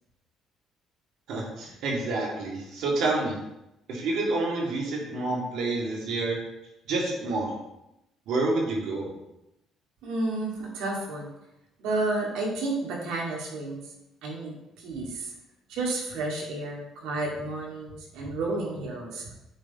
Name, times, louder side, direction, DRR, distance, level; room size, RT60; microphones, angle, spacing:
voice 1, 1.3-3.3 3.9-6.4 6.9-7.5 8.3-9.1, right 2 dB, 65° right, -2 dB, 2.1 m, -28 dB
voice 2, 10.0-11.3 11.8-13.8 14.2-15.3 15.7-19.2, right 2 dB, 90° right, -2 dB, 2.2 m, -31 dB
7.8 x 4.2 x 4.2 m, 0.88 s
cardioid pair, 175°, 0 cm